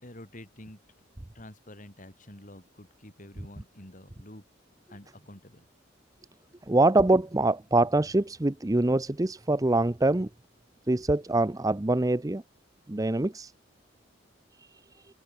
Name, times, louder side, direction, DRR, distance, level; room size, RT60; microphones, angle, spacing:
voice 1, 0.0-0.8 1.3-4.4 4.9-5.6, left 1 dB, 40° left, 4.6 m, -48 dB
voice 2, 6.7-10.3 10.9-12.4 12.9-13.5, right 2 dB, 20° right, 0.6 m, -24 dB
open air
head